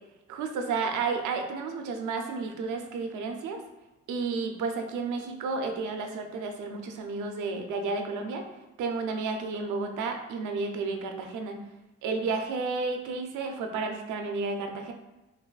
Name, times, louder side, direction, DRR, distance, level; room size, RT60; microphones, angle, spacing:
voice 1, 0.3-3.6 4.1-8.4 8.8-11.6 12.0-14.9, right 4 dB, 80° right, 4 dB, 0.6 m, -32 dB
5.6 x 2.6 x 2.4 m, 1.0 s
cardioid pair, 90°, 30 cm